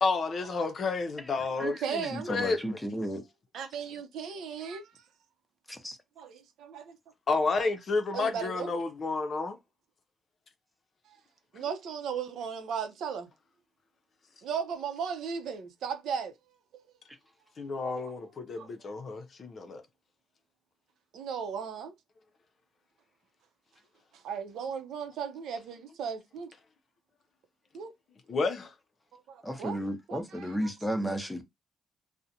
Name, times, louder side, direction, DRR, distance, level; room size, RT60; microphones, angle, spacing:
voice 1, 0.0-2.8 7.3-9.6 17.6-19.8 28.3-28.7, left 3 dB, 50° left, 0.5 m, -30 dB
voice 2, 1.6-2.4 3.5-5.0 6.2-7.0 8.1-8.7 11.5-13.3 14.4-16.3 16.7-16.8 17.8-18.1 18.6-18.7 21.1-21.9 24.1-26.5 27.7-27.9 29.1-29.8 30.1-30.7, right 7 dB, 80° right, 0.6 m, -36 dB
voice 3, 2.1-3.2 5.7-6.0 29.4-31.4, equal, 5° left, 0.6 m, -33 dB
2.5 x 2.1 x 2.7 m
cardioid pair, 90°, 0 cm